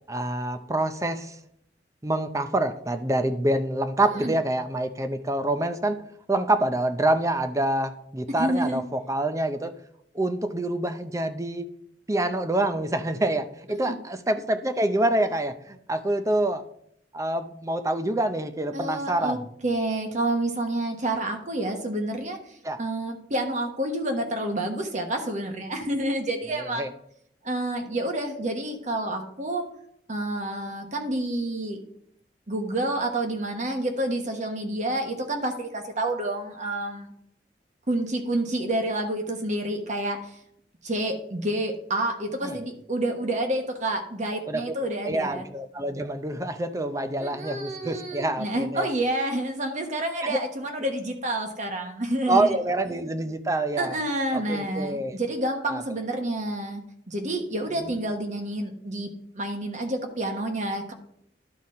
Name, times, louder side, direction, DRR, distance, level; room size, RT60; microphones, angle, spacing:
voice 1, 0.1-1.4 2.0-6.0 6.3-9.7 10.1-11.7 12.1-16.6 17.1-19.4 22.6-22.8 26.4-26.9 42.4-42.6 44.5-44.6 45.0-48.9 50.2-50.4 52.3-54.0 54.3-55.2 55.7-55.8 57.8-58.0, right 1 dB, 20° right, 9 dB, 0.5 m, -26 dB
voice 2, 8.4-8.8 13.7-14.0 18.7-19.4 19.6-26.9 27.4-29.7 30.1-31.8 32.5-37.1 37.9-40.4 40.8-45.5 47.2-52.6 53.8-60.9, right 1 dB, 45° right, 4 dB, 1.2 m, -29 dB
11.5 x 4.1 x 4.2 m, 0.70 s
head